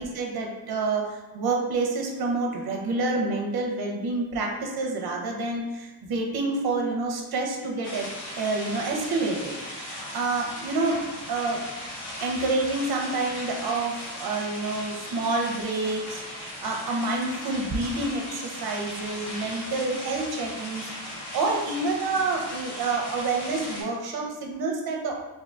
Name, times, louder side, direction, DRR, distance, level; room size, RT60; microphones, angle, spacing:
voice 1, 0.0-8.1 8.4-11.0 11.3-11.6 12.2-25.2, right 3 dB, 65° right, 0 dB, 0.8 m, -28 dB
sound 1, 7.8-23.8, left 1 dB, 65° left, 1.3 m, -38 dB
2.8 x 2.2 x 3.7 m, 1.1 s
supercardioid pair, 50°, 41 cm